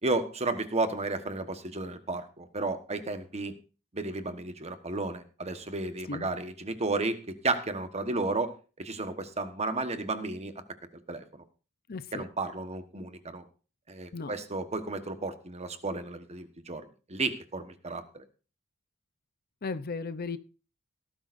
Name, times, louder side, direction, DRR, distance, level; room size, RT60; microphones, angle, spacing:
voice 1, 0.0-3.5 3.9-8.5 8.8-10.6 11.1-11.2 12.1-13.4 13.9-18.0, right 3 dB, 30° right, 8 dB, 1.3 m, -33 dB
voice 2, 11.9-12.3 14.1-14.3 19.6-20.4, left 4 dB, 45° left, 13 dB, 0.7 m, -35 dB
17.5 x 12.5 x 2.6 m, 0.36 s
head